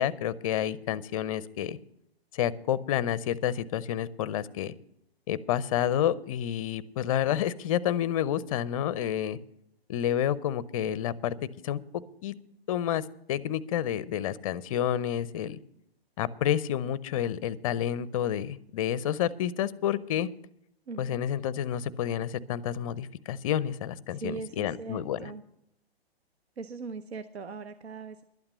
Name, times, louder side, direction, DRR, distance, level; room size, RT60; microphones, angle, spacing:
voice 1, 0.0-1.8 2.3-4.7 5.3-9.4 9.9-11.3 11.6-11.8 12.2-12.4 12.7-15.6 16.2-20.3 21.0-25.2, left 10 dB, 35° left, 19 dB, 0.5 m, -29 dB
voice 2, 20.9-21.2 24.1-25.4 26.6-28.2, right 4 dB, 80° right, 12 dB, 0.8 m, -40 dB
12.0 x 8.7 x 6.6 m, 0.76 s
figure-of-eight pair, 130°, 32 cm